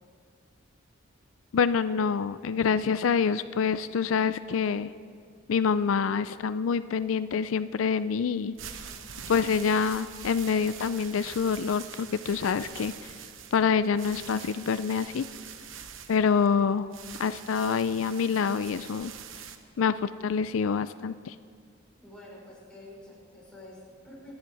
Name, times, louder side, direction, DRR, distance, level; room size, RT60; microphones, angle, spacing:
voice 1, 1.5-4.9 5.5-8.5 9.3-12.9 13.5-15.3 16.1-16.9 17.2-19.1 19.8-21.3, left 6 dB, 90° left, 14 dB, 0.4 m, -26 dB
sound 1, 8.4-19.6, right 7 dB, 75° right, 1.0 m, -44 dB
voice 2, 22.0-24.4, left 1 dB, 5° left, -5 dB, 5.0 m, -48 dB
25.5 x 10.5 x 4.7 m, 2.1 s
head